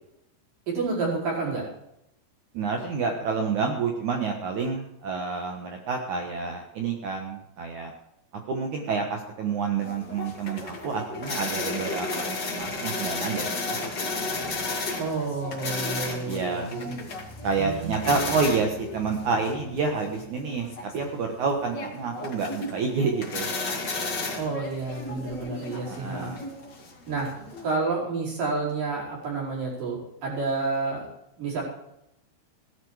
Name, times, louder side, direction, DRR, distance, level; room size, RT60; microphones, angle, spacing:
voice 1, 0.7-1.6 15.0-17.0 17.6-18.1 24.4-26.3 27.1-27.3 27.6-31.1 31.4-31.6, right 3 dB, 45° right, -4 dB, 6.3 m, -29 dB
voice 2, 2.5-7.9 8.5-13.8 16.2-16.7 17.4-23.5 25.8-26.4, right 4 dB, 85° right, 3 dB, 1.7 m, -28 dB
sound 1, 9.8-27.7, left 3 dB, 35° left, 1.7 m, -34 dB
17.0 x 11.0 x 4.8 m, 0.82 s
omnidirectional pair, 5.7 m